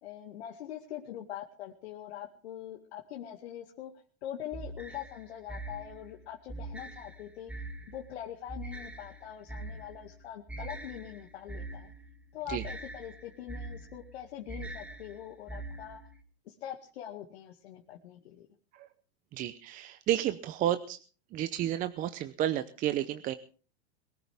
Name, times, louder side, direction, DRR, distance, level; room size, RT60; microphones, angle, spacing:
voice 1, 0.0-3.9 4.2-7.5 7.9-11.9 12.3-16.0 16.5-18.5, left 11 dB, 75° left, 1 dB, 2.2 m, -43 dB
sound 1, 4.5-16.2, right 2 dB, 5° right, 1.4 m, -43 dB
voice 2, 19.3-21.0 21.3-23.3, right 12 dB, 25° right, 11 dB, 0.7 m, -31 dB
22.0 x 14.5 x 3.6 m, 0.39 s
supercardioid pair, 145°, 34 cm